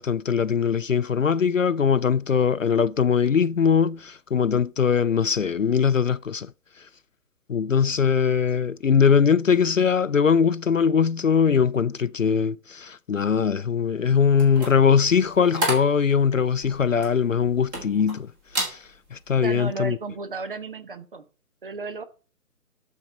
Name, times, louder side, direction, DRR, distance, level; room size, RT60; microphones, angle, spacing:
voice 1, 0.0-6.5 7.5-18.3 18.6-20.0, left 6 dB, 60° left, 0.5 m, -21 dB
sound 1, 14.3-18.2 18.5-18.8 19.3-19.5, right 1 dB, 15° right, 1.7 m, -31 dB
voice 2, 19.4-21.2 21.6-22.0, right 3 dB, 35° right, 1.1 m, -33 dB
12.5 x 4.7 x 6.6 m
figure-of-eight pair, 145°, 46 cm